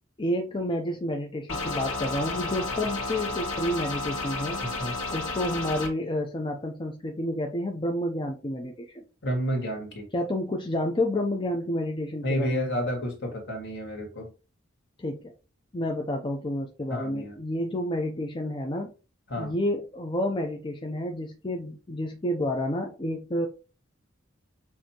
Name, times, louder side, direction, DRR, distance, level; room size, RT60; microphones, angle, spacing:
voice 1, 0.2-4.6 5.1-9.0 10.1-12.7 15.0-15.3 15.7-18.9 19.4-23.5, left 1 dB, 25° left, 0.5 m, -30 dB
sound 1, 1.5-5.9, left 3 dB, 85° left, 1.9 m, -32 dB
voice 2, 4.6-4.9 9.2-10.1 12.2-14.3 16.9-17.4 19.3-19.5, equal, 60° left, 2.0 m, -30 dB
6.4 x 2.8 x 2.9 m
head